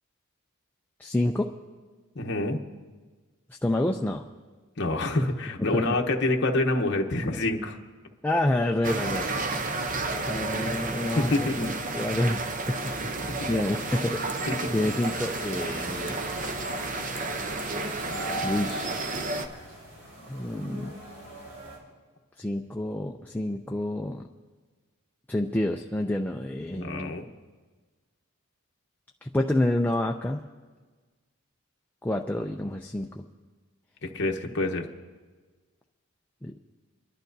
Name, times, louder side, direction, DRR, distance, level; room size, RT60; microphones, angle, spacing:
voice 1, 1.0-1.5 3.6-4.3 5.6-5.8 8.2-9.3 10.3-11.3 11.6-12.9 13.5-16.2 18.4-19.4 20.3-20.9 22.4-24.3 25.3-27.1 29.2-30.4 32.0-33.2 36.4-36.6, left 1 dB, 10° left, 2 dB, 0.3 m, -28 dB
voice 2, 2.1-2.6 4.8-7.8 11.2-11.7 13.4-13.6 14.5-14.7 26.7-27.3 34.0-34.9, left 2 dB, 55° left, 2 dB, 0.9 m, -27 dB
sound 1, 8.8-19.5, right 2 dB, 35° right, 0.7 m, -31 dB
Applause, 13.1-20.2, equal, 60° right, 2.2 m, -46 dB
sound 2, 13.8-21.8, right 1 dB, 85° right, 5.4 m, -41 dB
29.5 x 11.5 x 2.7 m, 1.4 s
head